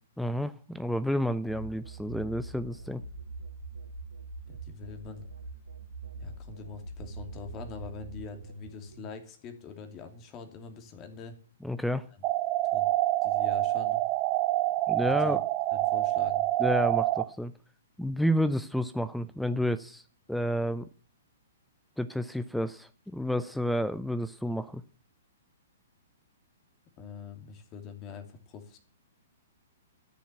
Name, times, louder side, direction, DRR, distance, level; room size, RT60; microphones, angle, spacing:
voice 1, 0.2-3.0 11.6-12.1 14.9-15.4 16.6-17.5 18.0-20.0 20.3-20.9 22.0-24.8, equal, ahead, 15 dB, 0.5 m, -30 dB
sound 1, 1.5-9.1, right 3 dB, 75° right, 1.9 m, -43 dB
voice 2, 4.5-5.2 6.2-11.3 12.7-12.9 13.2-14.0 15.0-15.4 15.7-16.5 27.0-28.8, left 6 dB, 30° left, 6 dB, 2.7 m, -44 dB
sound 2, 12.2-17.2, right 16 dB, 30° right, 1.2 m, -27 dB
13.5 x 7.2 x 9.1 m, 0.43 s
figure-of-eight pair, 115°, 0 cm